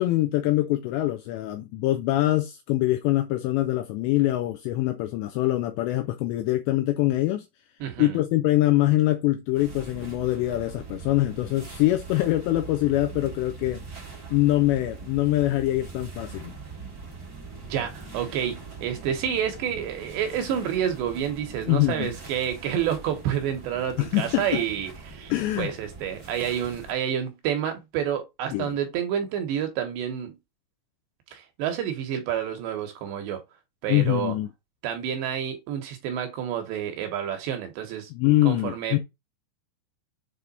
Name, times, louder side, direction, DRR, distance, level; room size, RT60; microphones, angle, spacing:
voice 1, 0.0-7.5 8.0-13.8 14.3-16.5 21.7-22.1 24.0-24.6 25.3-25.7 28.5-28.8 33.9-34.5 38.1-39.0, left 16 dB, 90° left, 2.5 m, -24 dB
voice 2, 7.8-8.2 17.6-30.4 31.3-33.4 33.8-34.4 34.8-38.1 38.4-39.0, right 9 dB, 75° right, 2.8 m, -29 dB
sound 1, 9.5-26.9, right 4 dB, 90° right, 0.8 m, -42 dB
7.4 x 3.4 x 4.0 m
omnidirectional pair, 5.6 m